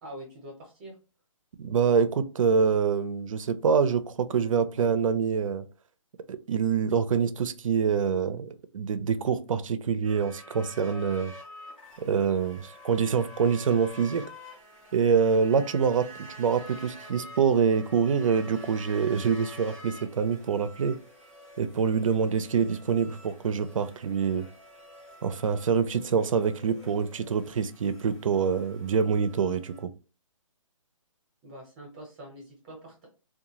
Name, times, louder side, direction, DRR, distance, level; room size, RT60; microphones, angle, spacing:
voice 1, 0.0-0.9 31.4-33.1, right 1 dB, 20° right, 0.7 m, -44 dB
voice 2, 1.6-5.6 6.3-11.3 12.0-14.2 14.9-16.1 16.4-21.0 21.6-24.5 25.2-29.9, right 6 dB, 70° right, 0.4 m, -25 dB
sound 1, 10.0-29.8, equal, 5° left, 0.3 m, -48 dB
2.6 x 2.2 x 2.8 m
hypercardioid pair, 155°, 17 cm